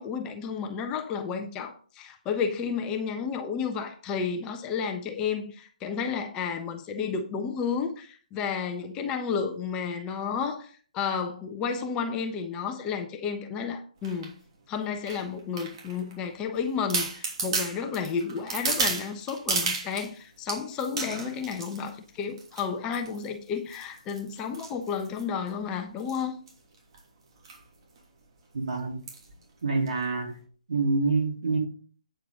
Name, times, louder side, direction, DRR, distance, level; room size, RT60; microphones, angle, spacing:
voice 1, 0.0-14.3 14.7-26.4, left 6 dB, 20° left, 5 dB, 1.1 m, -32 dB
sound 1, 14.0-14.3 15.1-16.1 16.5-16.6 16.9-20.1 20.5-21.9 22.4-22.6 22.9-23.3 23.7-25.5 26.0-26.2 26.5-26.6 26.8-27.0 27.4-27.6 28.0-28.1 29.1-29.3 29.9-30.0, right 4 dB, 40° right, 3.1 m, -32 dB
voice 2, 28.5-29.0 29.6-30.4 30.7-31.6, right 3 dB, 60° right, 0 dB, 3.6 m, -26 dB
9.0 x 7.8 x 3.9 m, 0.41 s
figure-of-eight pair, 135°, 4 cm